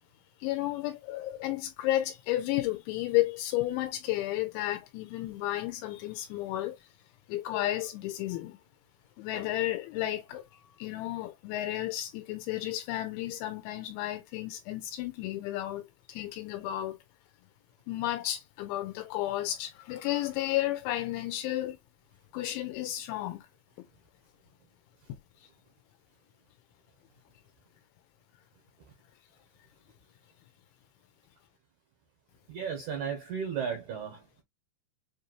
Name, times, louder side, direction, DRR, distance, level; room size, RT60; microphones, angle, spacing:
voice 1, 0.4-6.8 7.3-8.6 9.2-10.4 10.8-15.8 16.1-17.0 17.9-21.8 22.3-23.4 25.1-25.2, left 15 dB, 85° left, 2.9 m, -32 dB
voice 2, 32.5-34.4, right 7 dB, 90° right, 1.7 m, -35 dB
7.1 x 2.6 x 2.9 m
omnidirectional pair, 5.3 m